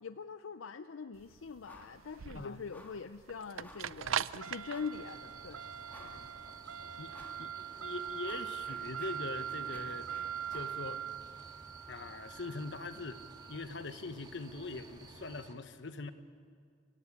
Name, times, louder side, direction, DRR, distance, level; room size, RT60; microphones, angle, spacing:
voice 1, 0.0-5.6, left 5 dB, 85° left, 11 dB, 0.6 m, -43 dB
sound 1, 1.2-15.3, right 9 dB, 90° right, 0.5 m, -42 dB
sound 2, 1.6-2.0 2.3-2.4 2.7-3.1 3.6-4.0 4.7-5.0 5.5-5.6 5.9-6.4 7.1-7.5 7.8-10.8, left 1 dB, 10° left, 2.1 m, -56 dB
sound 3, 4.9-15.5, right 2 dB, 20° right, 1.9 m, -55 dB
voice 2, 7.0-10.1 10.5-11.0 11.9-13.2 13.5-16.1, left 3 dB, 65° left, 10 dB, 1.1 m, -43 dB
25.5 x 16.0 x 8.8 m, 2.2 s
head